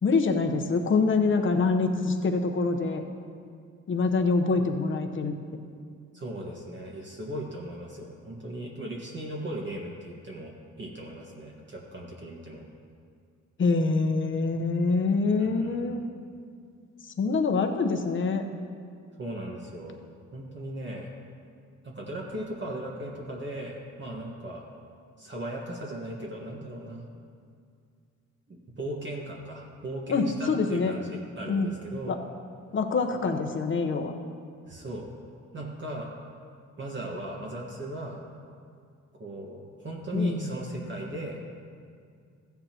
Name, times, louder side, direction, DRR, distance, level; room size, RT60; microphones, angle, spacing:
voice 1, 0.0-3.0 3.9-5.3 13.6-16.0 17.2-18.4 30.1-30.9 31.5-31.7 32.1-32.2 32.7-34.1 40.1-40.5, left 4 dB, 40° left, 5 dB, 1.0 m, -25 dB
voice 2, 6.1-10.5 10.8-12.6 15.4-15.8 19.2-20.0 20.3-21.1 21.8-24.6 25.2-27.0 28.5-32.1 34.7-35.1 35.5-36.1 36.8-38.2 39.1-41.4, right 1 dB, 40° right, -2 dB, 1.5 m, -37 dB
15.0 x 9.3 x 3.0 m, 2.3 s
cardioid pair, 90°, 30 cm